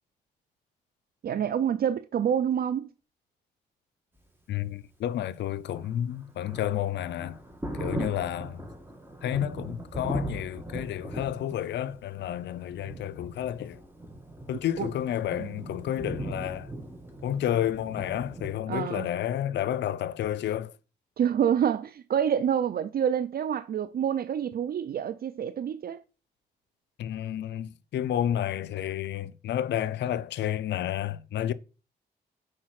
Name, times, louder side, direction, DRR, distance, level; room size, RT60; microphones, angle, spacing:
voice 1, 1.2-2.9 14.8-14.9 15.4-15.5 18.7-19.1 21.2-26.0, right 9 dB, 55° right, 0.4 m, -27 dB
voice 2, 4.5-7.4 7.7-8.7 9.2-13.8 14.5-16.7 17.2-20.7 27.0-31.5, left 11 dB, 80° left, 0.5 m, -30 dB
Thunder, 5.7-18.5, right 1 dB, 10° right, 2.0 m, -39 dB
5.7 x 4.5 x 4.8 m
supercardioid pair, 55°, 18 cm